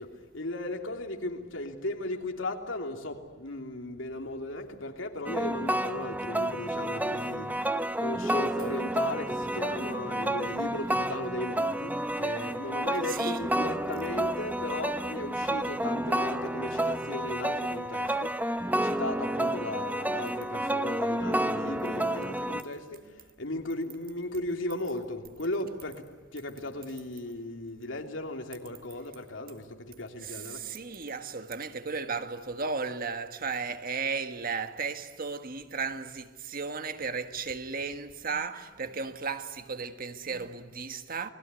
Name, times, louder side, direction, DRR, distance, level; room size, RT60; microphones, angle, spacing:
voice 1, 0.0-18.3 18.8-26.0 26.3-30.6, left 1 dB, 85° left, 3.1 m, -36 dB
sound 1, 5.2-22.6, right 1 dB, 10° right, 1.0 m, -30 dB
voice 2, 13.1-13.4 30.2-41.3, right 5 dB, 50° right, 1.6 m, -35 dB
29.0 x 21.0 x 9.8 m
head